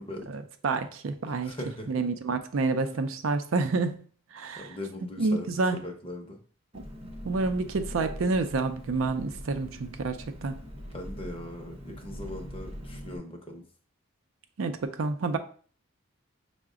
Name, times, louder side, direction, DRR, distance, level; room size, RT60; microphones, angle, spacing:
voice 1, 0.3-1.5 1.9-4.0 4.3-4.7 5.2-5.9 6.7-6.8 7.2-10.6 14.6-15.4, right 3 dB, 75° right, 0.5 m, -28 dB
voice 2, 1.3-1.9 4.6-6.4 10.9-13.6, left 1 dB, 25° left, 0.6 m, -40 dB
Engine, 6.7-13.2, equal, 30° right, 0.7 m, -42 dB
5.7 x 2.1 x 3.6 m
head